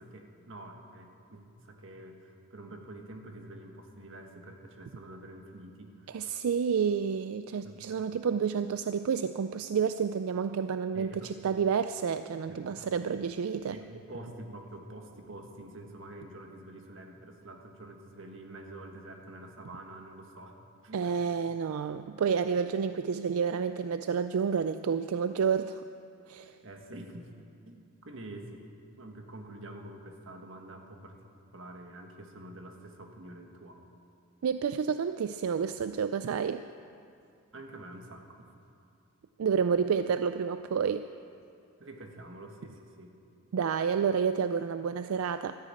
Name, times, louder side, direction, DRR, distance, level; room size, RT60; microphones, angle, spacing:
voice 1, 0.0-6.2 7.6-7.8 10.9-11.3 12.5-12.9 13.7-21.3 26.6-27.3 27.6-28.7 29.0-33.8 37.5-38.6 41.8-43.1, right 1 dB, 60° right, 3 dB, 1.6 m, -47 dB
voice 2, 6.1-13.8 20.9-25.8 26.3-26.6 34.4-36.6 39.4-41.1 43.5-45.6, right 6 dB, 85° right, 11 dB, 0.4 m, -29 dB
13.0 x 9.9 x 8.9 m, 2.5 s
head